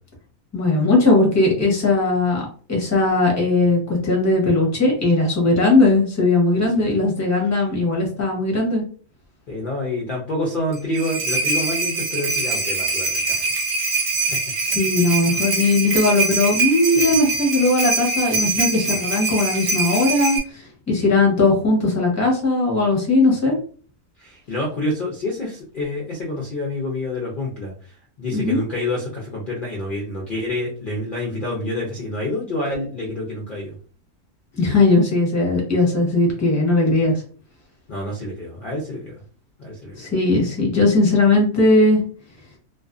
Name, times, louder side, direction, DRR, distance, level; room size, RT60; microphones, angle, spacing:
voice 1, 0.5-8.8 14.6-23.6 28.3-28.6 34.6-37.1 40.0-42.0, left 2 dB, 15° left, -1 dB, 0.6 m, -18 dB
voice 2, 9.5-13.5 16.9-17.2 24.2-33.8 37.9-39.1 39.6-40.0, left 1 dB, 70° left, -2 dB, 0.5 m, -28 dB
sound 1, 10.7-20.4, right 4 dB, 55° right, 0.8 m, -23 dB
2.5 x 2.3 x 2.4 m, 0.41 s
omnidirectional pair, 1.6 m